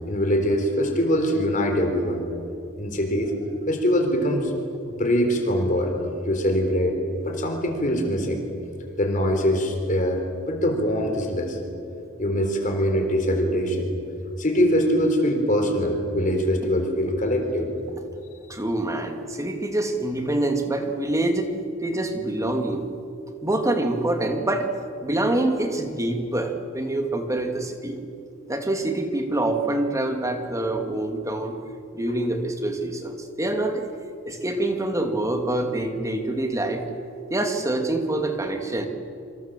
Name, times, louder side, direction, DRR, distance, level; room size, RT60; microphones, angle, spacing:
voice 1, 0.1-2.2 2.8-3.3 3.7-4.5 4.8-5.9 6.3-7.0 7.2-8.4 9.0-11.6 12.2-13.9 14.4-17.7, equal, 40° left, 4 dB, 3.8 m, -23 dB
voice 2, 18.5-21.5 21.8-22.9 23.4-24.7 25.0-28.0 28.5-31.6 31.9-33.9 34.3-36.9 37.3-38.9, right 1 dB, 15° right, 4 dB, 2.4 m, -25 dB
27.5 x 25.0 x 7.6 m, 2.6 s
head